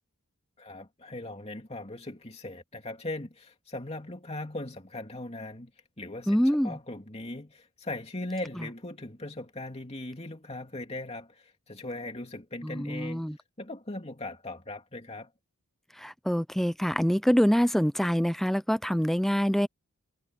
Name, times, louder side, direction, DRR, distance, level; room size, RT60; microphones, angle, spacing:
voice 1, 0.6-5.7 6.0-13.3 13.6-15.3, left 2 dB, 30° left, 2.7 m, -39 dB
voice 2, 6.3-6.8 12.6-13.4 16.0-19.7, equal, ahead, 0.5 m, -25 dB
head